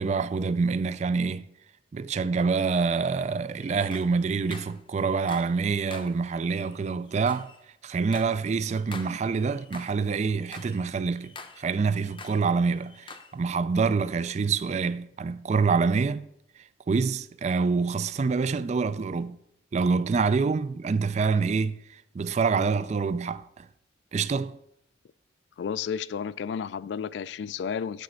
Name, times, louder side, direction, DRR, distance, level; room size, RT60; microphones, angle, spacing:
voice 1, 0.0-1.5 1.9-7.5 7.8-16.3 16.9-19.4 19.7-23.7 24.1-24.6, right 4 dB, 40° right, 0.3 m, -26 dB
sound 1, 3.6-5.6 5.9-10.0 10.3-12.5 12.7-13.4, left 4 dB, 30° left, 0.6 m, -47 dB
voice 2, 25.6-28.0, left 7 dB, 70° left, 0.3 m, -32 dB
8.3 x 4.2 x 6.4 m
head